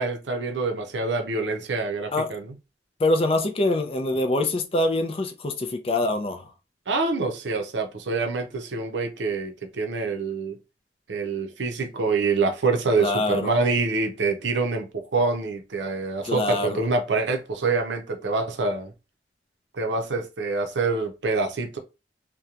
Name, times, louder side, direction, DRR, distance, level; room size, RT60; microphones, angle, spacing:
voice 1, 0.0-2.5 6.9-10.6 11.1-18.9 19.7-21.8, right 3 dB, 75° right, 0.6 m, -26 dB
voice 2, 3.0-6.4 13.0-13.5 16.2-16.8, left 2 dB, 30° left, 0.4 m, -24 dB
2.8 x 2.2 x 2.4 m
head